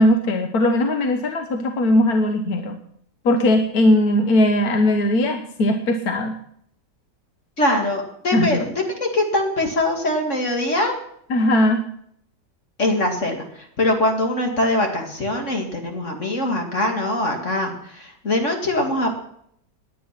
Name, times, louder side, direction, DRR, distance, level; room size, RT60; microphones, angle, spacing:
voice 1, 0.0-2.8 3.2-6.3 8.3-8.6 11.3-11.8, left 1 dB, 60° left, 5 dB, 1.6 m, -19 dB
voice 2, 7.6-11.0 12.8-19.1, left 1 dB, 45° left, 2 dB, 2.5 m, -22 dB
18.5 x 10.0 x 5.9 m, 0.69 s
omnidirectional pair, 1.9 m